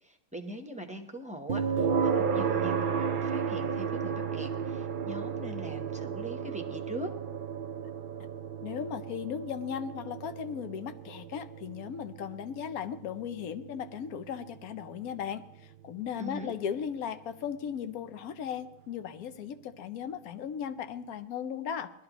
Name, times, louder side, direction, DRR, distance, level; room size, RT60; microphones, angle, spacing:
voice 1, 0.0-7.1 16.2-16.5, right 1 dB, 5° right, 3 dB, 0.7 m, -42 dB
sound 1, 1.5-16.4, right 6 dB, 60° right, 0.5 m, -33 dB
voice 2, 8.6-15.4 15.8-21.9, left 8 dB, 75° left, 11 dB, 1.2 m, -37 dB
20.0 x 12.5 x 3.0 m, 0.86 s
omnidirectional pair, 1.6 m